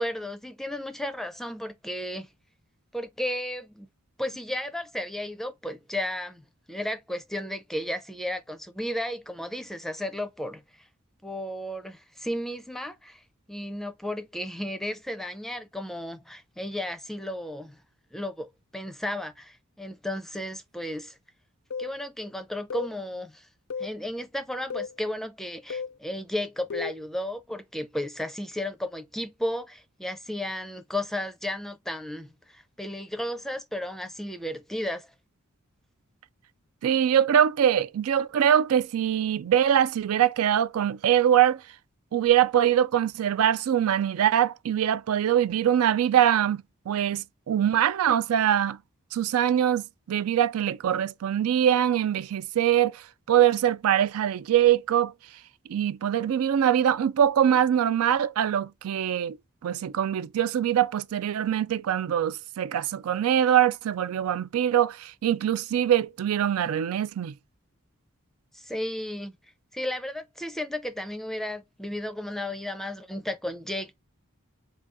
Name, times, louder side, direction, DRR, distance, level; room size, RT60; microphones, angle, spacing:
voice 1, 0.0-2.3 2.9-3.9 4.2-6.4 6.7-10.6 11.2-13.2 13.5-17.8 18.1-21.1 21.8-23.5 23.8-35.1 68.5-69.3 69.7-73.9, left 1 dB, ahead, 0.5 m, -34 dB
sound 1, 21.7-22.0 22.7-23.0 23.7-24.0 24.7-25.0 25.7-26.0 26.7-27.0, left 6 dB, 70° left, 0.5 m, -33 dB
voice 2, 36.8-41.6 42.1-48.8 49.1-55.1 55.7-59.4 59.6-67.3, right 10 dB, 85° right, 0.3 m, -23 dB
3.8 x 2.3 x 3.5 m
head